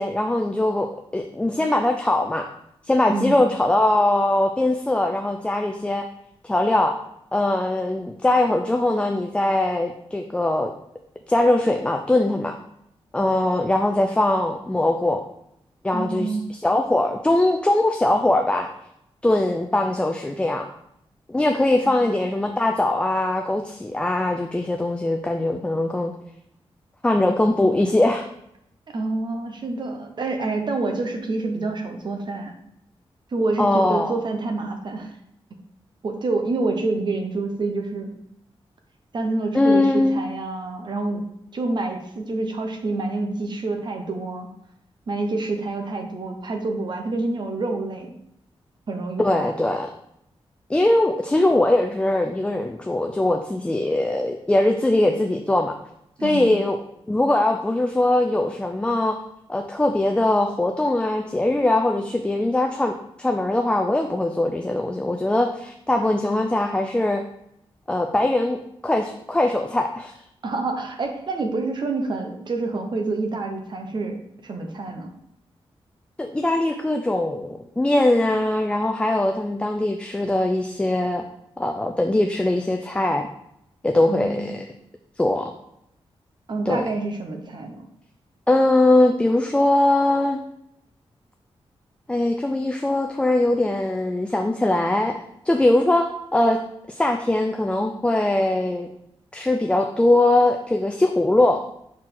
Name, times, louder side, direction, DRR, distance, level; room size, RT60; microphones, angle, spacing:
voice 1, 0.0-2.5 2.8-6.1 6.4-7.0 7.3-10.7 11.3-12.6 13.1-15.2 15.8-18.7 19.2-20.7 21.3-26.1 27.0-28.2 33.6-34.1 39.5-40.2 49.2-49.9 50.7-55.7 56.2-56.8 57.1-59.2 59.5-67.2 67.9-70.1 76.2-81.2 81.6-83.3 83.8-84.7 85.2-85.5 86.7-86.9 88.5-90.4 92.1-95.2 95.4-96.6 96.9-98.9 99.3-101.6, left 1 dB, 10° left, 4 dB, 0.4 m, -21 dB
voice 2, 3.1-3.4 15.9-16.5 21.8-21.9 28.9-32.6 33.3-35.1 36.0-38.1 39.1-41.3 41.5-44.5 45.1-48.1 48.9-49.5 56.2-56.6 70.4-74.2 74.4-75.1 84.1-84.6 86.5-87.9, right 3 dB, 50° right, 4 dB, 0.9 m, -27 dB
5.9 x 4.6 x 3.8 m, 0.77 s
wide cardioid pair, 155°, 10 cm